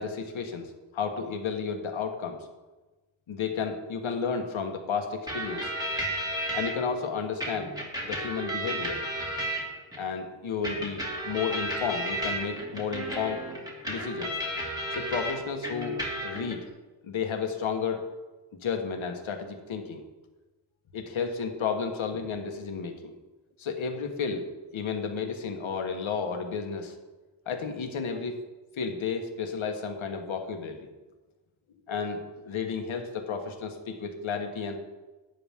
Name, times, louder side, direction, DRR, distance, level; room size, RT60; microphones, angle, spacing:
voice 1, 0.0-2.4 3.3-5.7 6.5-7.7 8.0-9.0 10.0-13.4 13.9-14.4 14.9-16.6 17.0-18.0 18.6-20.0 20.9-23.1 23.6-24.4 24.7-26.9 27.4-28.4 28.8-30.9 31.9-34.8, left 5 dB, 80° left, 4 dB, 1.5 m, -32 dB
sound 1, 5.3-6.7 7.4-10.0 10.6-15.3 15.6-16.5, right 1 dB, 10° right, 2.3 m, -33 dB
11.5 x 9.2 x 3.6 m, 1.2 s
wide cardioid pair, 135°, 47 cm